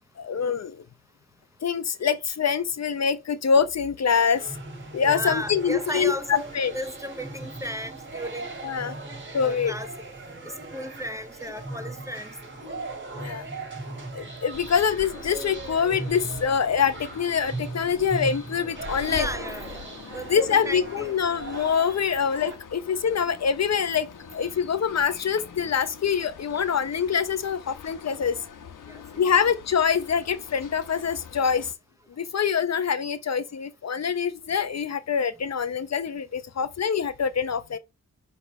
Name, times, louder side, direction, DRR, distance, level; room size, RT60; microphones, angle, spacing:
voice 1, 0.2-0.8 1.6-4.6 4.9-6.7 8.6-8.9 9.3-9.7 13.2-13.5 14.1-19.3 20.3-24.1 24.3-28.4 29.2-31.7 32.2-37.8, left 7 dB, 55° left, 0.8 m, -25 dB
sound 1, 4.3-22.5, right 3 dB, 40° right, 3.2 m, -38 dB
voice 2, 5.1-8.5 9.4-9.9 10.4-12.3 19.1-21.2 28.9-29.0, equal, 10° right, 0.7 m, -35 dB
sound 2, 14.5-31.7, left 6 dB, 85° left, 1.4 m, -43 dB
5.6 x 5.2 x 6.3 m
wide cardioid pair, 150°, 31 cm